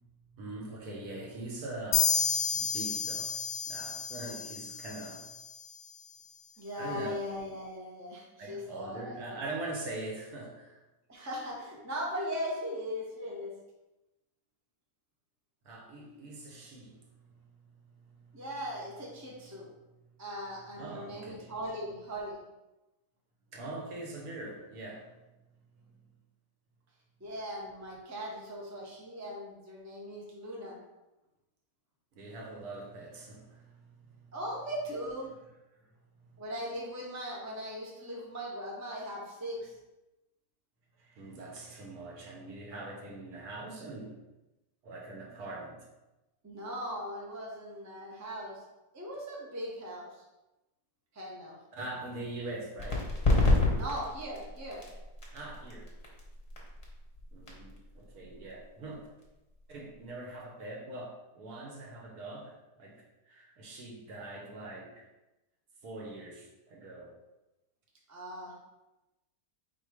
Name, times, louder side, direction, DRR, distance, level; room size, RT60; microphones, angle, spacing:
voice 1, 0.3-5.3 6.7-7.1 8.4-10.8 15.6-18.4 20.8-21.5 23.5-25.2 25.7-26.0 32.2-34.4 35.8-35.9 36.3-36.4 41.0-44.2 44.8-45.8 51.7-53.1 55.3-55.9 57.3-59.1 59.7-65.1 65.8-67.1, right 2 dB, 65° right, -1 dB, 1.3 m, -43 dB
sound 1, 1.9-5.5, left 6 dB, 70° left, 1.0 m, -31 dB
voice 2, 6.6-9.4 11.1-13.5 18.3-19.7 20.2-22.4 27.2-30.8 34.3-35.3 36.4-39.7 46.4-48.6 48.9-50.2 51.1-51.6 53.7-54.8 68.1-68.5, equal, 25° right, -3 dB, 0.3 m, -39 dB
sound 2, 52.8-60.1, left 2 dB, 30° left, 0.8 m, -31 dB
3.8 x 2.8 x 4.8 m, 1.0 s
omnidirectional pair, 1.9 m